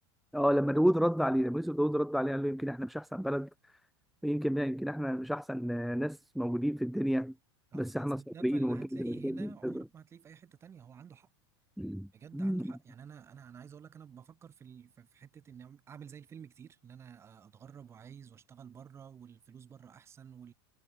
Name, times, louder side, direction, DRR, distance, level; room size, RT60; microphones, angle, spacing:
voice 1, 0.3-3.5 4.2-7.3 7.7-9.8 11.8-12.1 12.3-12.7, equal, ahead, 0.4 m, -30 dB
voice 2, 7.7-11.3 12.1-20.5, right 8 dB, 20° right, 2.6 m, -51 dB
supercardioid pair, 160°, 14 cm